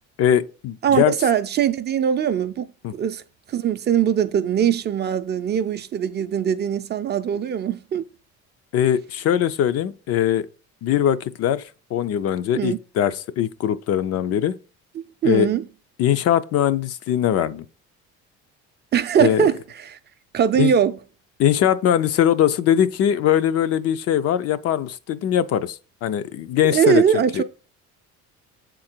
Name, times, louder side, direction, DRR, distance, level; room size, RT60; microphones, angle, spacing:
voice 1, 0.2-1.1 2.8-2.9 8.7-10.5 10.8-11.6 11.9-14.5 15.2-15.5 16.0-17.6 19.2-19.5 20.6-20.7 21.4-27.4, left 10 dB, 55° left, 0.5 m, -21 dB
voice 2, 0.8-2.7 2.9-3.2 3.5-8.0 12.5-12.8 15.2-15.6 18.9-20.0 20.3-21.0 26.6-27.4, right 9 dB, 35° right, 0.4 m, -21 dB
7.2 x 3.8 x 4.3 m
cardioid pair, 125°, 29 cm